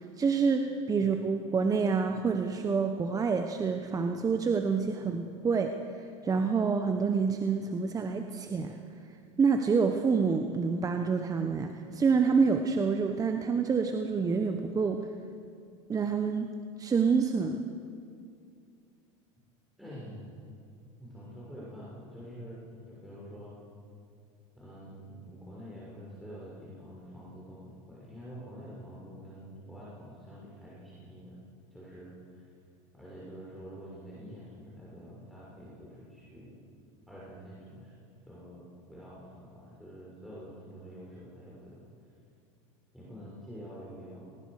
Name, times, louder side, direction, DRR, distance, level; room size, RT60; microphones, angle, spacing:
voice 1, 0.2-8.8 9.4-15.0 15.9-16.5 16.8-17.7, right 5 dB, 20° right, 5 dB, 1.2 m, -27 dB
voice 2, 19.8-20.3 21.0-23.6 24.6-31.4 31.7-32.5 32.9-36.6 37.1-37.9 38.3-41.8 42.9-44.4, equal, ahead, -8 dB, 6.5 m, -47 dB
26.0 x 20.0 x 6.7 m, 2.4 s
supercardioid pair, 115°, 17 cm